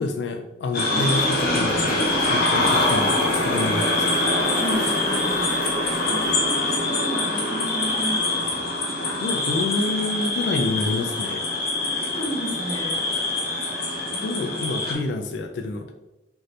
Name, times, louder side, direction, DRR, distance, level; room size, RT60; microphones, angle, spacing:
voice 1, 0.0-4.2 9.2-11.4 13.9-15.9, left 2 dB, 75° left, 5 dB, 0.3 m, -28 dB
sound 1, 0.7-14.9, left 2 dB, 55° left, 0.7 m, -24 dB
sound 2, 0.9-6.5, right 1 dB, 65° right, 1.2 m, -40 dB
voice 2, 4.6-5.6 6.1-8.7 11.9-13.1 14.1-14.5, equal, 20° left, -3 dB, 0.6 m, -33 dB
2.6 x 2.6 x 3.2 m, 0.98 s
head